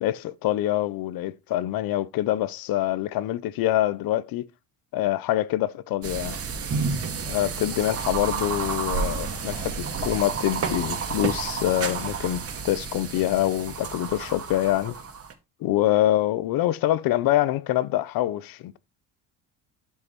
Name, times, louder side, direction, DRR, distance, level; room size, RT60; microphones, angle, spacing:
voice 1, 0.0-4.5 4.9-6.4 7.3-15.0 15.6-18.8, left 14 dB, 65° left, 0.9 m, -25 dB
sound 1, 6.0-15.3, right 5 dB, 35° right, 2.0 m, -30 dB
12.0 x 5.7 x 3.1 m
cardioid pair, 130°, 39 cm